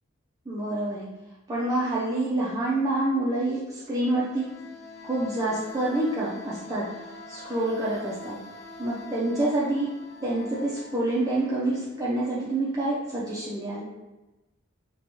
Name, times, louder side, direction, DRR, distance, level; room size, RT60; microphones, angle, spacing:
voice 1, 0.5-1.1 1.5-4.5 5.0-8.4 8.8-9.9 10.2-13.9, right 1 dB, 15° right, -7 dB, 0.3 m, -27 dB
sound 1, 3.8-12.4, left 3 dB, 90° left, 0.7 m, -45 dB
2.8 x 2.2 x 2.8 m, 1.1 s
head